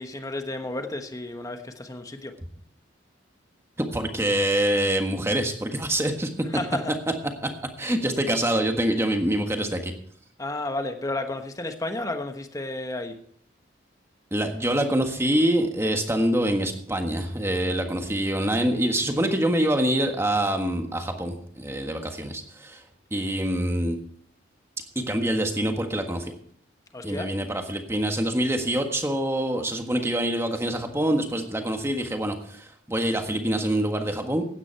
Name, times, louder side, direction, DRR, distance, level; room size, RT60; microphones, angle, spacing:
voice 1, 0.0-2.3 6.5-6.9 10.4-13.1 26.9-27.3, left 2 dB, 20° left, 6 dB, 1.2 m, -32 dB
voice 2, 3.8-6.3 7.4-7.5 7.8-9.9 14.3-22.8 23.1-24.0 24.9-26.3 27.0-34.5, right 1 dB, 15° right, 5 dB, 1.5 m, -25 dB
16.0 x 9.7 x 4.6 m, 0.62 s
head